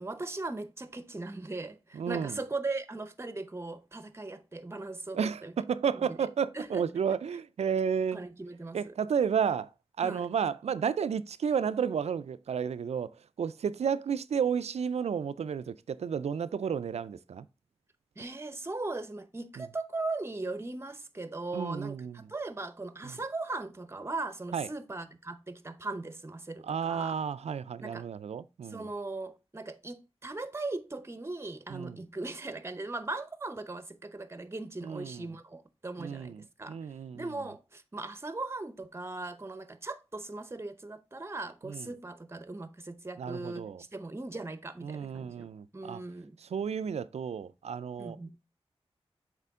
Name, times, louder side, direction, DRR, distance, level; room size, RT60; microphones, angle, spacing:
voice 1, 0.0-5.5 6.0-6.2 6.5-6.8 8.1-8.9 10.0-10.3 18.2-27.1 27.8-28.1 28.7-36.8 37.1-43.6 43.9-46.4 48.0-48.4, right 2 dB, 25° right, 0.8 m, -39 dB
voice 2, 1.9-2.4 5.1-8.2 8.7-9.7 10.0-13.1 13.4-17.5 19.6-19.7 21.5-22.3 23.0-23.2 24.5-24.7 26.6-28.9 31.7-32.0 34.8-35.3 36.0-37.3 41.6-41.9 43.2-43.8 44.8-46.0 46.4-48.2, right 7 dB, 90° right, 0.4 m, -32 dB
6.7 x 4.4 x 3.6 m
wide cardioid pair, 70°, 11 cm